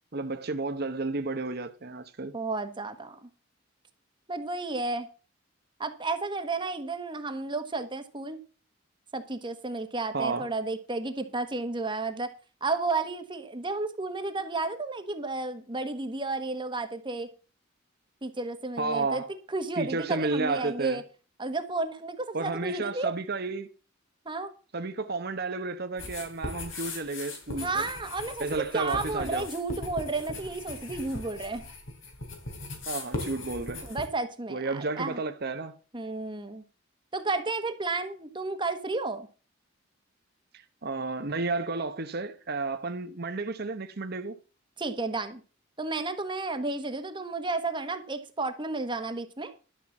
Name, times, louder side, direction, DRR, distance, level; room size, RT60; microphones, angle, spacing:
voice 1, 0.1-2.3 10.1-10.5 18.8-19.3 19.8-21.0 22.3-23.7 24.7-27.9 28.4-29.5 32.9-33.8 34.5-35.7 40.8-44.4, right 3 dB, 50° right, 0.9 m, -32 dB
voice 2, 2.3-3.3 4.3-5.1 5.8-8.4 9.1-12.3 12.6-17.3 18.2-19.2 19.5-21.0 21.4-23.1 24.2-24.5 27.6-28.5 28.7-31.6 33.8-35.2 35.9-36.6 37.1-39.3 44.8-45.4 45.8-49.5, right 3 dB, 25° right, 1.2 m, -32 dB
sound 1, 26.0-34.1, left 2 dB, 80° left, 3.1 m, -39 dB
12.5 x 5.8 x 7.1 m
head